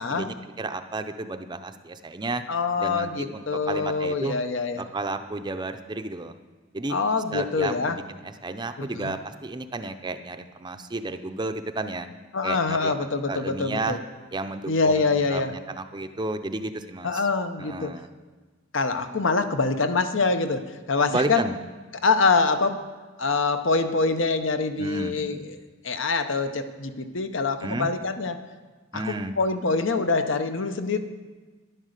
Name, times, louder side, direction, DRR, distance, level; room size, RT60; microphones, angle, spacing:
voice 1, 0.0-2.4 2.8-4.4 4.7-6.4 6.7-7.0 7.3-12.1 12.4-12.9 13.3-14.0 14.3-17.2 17.6-18.1 21.1-21.6 24.8-25.1 27.6-27.9 28.9-29.3, right 2 dB, 20° right, 8 dB, 0.6 m, -32 dB
voice 2, 2.5-4.8 6.9-8.0 8.8-9.1 12.3-14.0 14.7-15.5 17.0-18.0 18.7-21.5 22.0-22.8 23.2-25.5 25.8-28.4 28.9-31.0, left 4 dB, 65° left, 9 dB, 0.9 m, -25 dB
11.5 x 11.0 x 6.6 m, 1.3 s
head